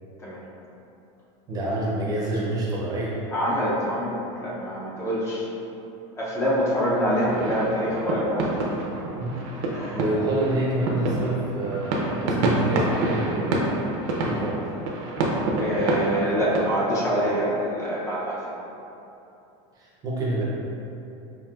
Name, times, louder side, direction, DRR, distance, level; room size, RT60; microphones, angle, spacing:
voice 1, 1.5-3.1 9.2-9.4 9.9-13.6 14.2-14.7 19.8-20.5, right 1 dB, 25° right, -5 dB, 0.6 m, -27 dB
voice 2, 3.3-5.5 6.2-8.6 9.7-10.0 15.6-18.5, equal, 20° left, -7 dB, 0.5 m, -25 dB
sound 1, 7.1-16.6, right 2 dB, 70° right, 0.6 m, -27 dB
5.5 x 2.7 x 2.3 m, 2.8 s
supercardioid pair, 160°, 16 cm